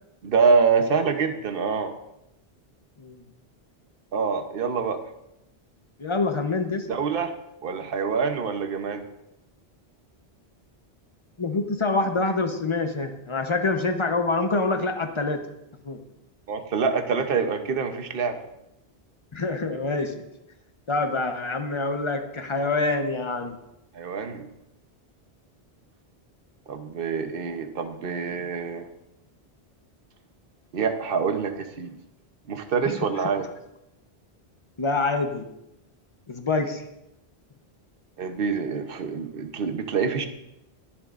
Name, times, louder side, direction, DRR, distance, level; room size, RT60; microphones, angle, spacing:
voice 1, 0.2-1.9 4.1-5.0 6.9-7.3 7.6-9.0 16.5-18.4 23.9-24.5 26.7-28.9 30.7-31.9 32.5-33.5 38.2-40.3, right 5 dB, 60° right, 7 dB, 1.1 m, -25 dB
voice 2, 6.0-6.9 11.4-15.5 15.8-16.0 19.3-20.2 20.9-23.6 32.8-33.0 34.8-35.5 36.3-36.8, left 3 dB, 30° left, 6 dB, 0.9 m, -26 dB
21.0 x 7.3 x 2.5 m, 0.87 s
omnidirectional pair, 1.1 m